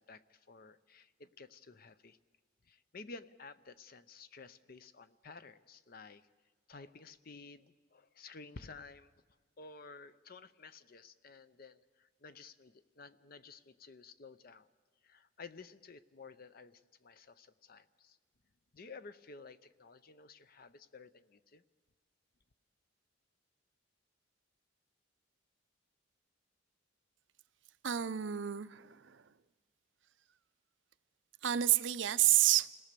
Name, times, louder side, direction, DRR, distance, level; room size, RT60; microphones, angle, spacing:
voice 1, 0.0-2.2 2.6-6.3 6.7-9.1 9.6-14.7 15.0-18.2 18.7-21.6, left 4 dB, 45° left, 13 dB, 0.6 m, -53 dB
voice 2, 27.8-29.2 31.4-32.7, right 13 dB, 65° right, 14 dB, 0.6 m, -29 dB
27.0 x 18.0 x 6.8 m, 1.4 s
head